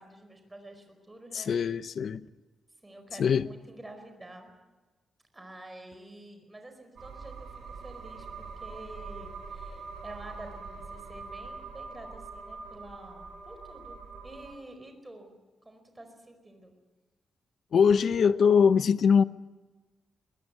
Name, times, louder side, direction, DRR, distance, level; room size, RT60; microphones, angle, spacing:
voice 1, 0.0-1.5 2.8-4.5 5.3-15.3 15.6-16.7, right 1 dB, 15° right, 4.7 m, -48 dB
voice 2, 1.3-2.2 3.2-3.5 17.7-19.2, left 6 dB, 60° left, 0.8 m, -22 dB
sound 1, 7.0-14.6, right 4 dB, 60° right, 4.5 m, -43 dB
22.0 x 21.0 x 8.3 m
wide cardioid pair, 140°, 0 cm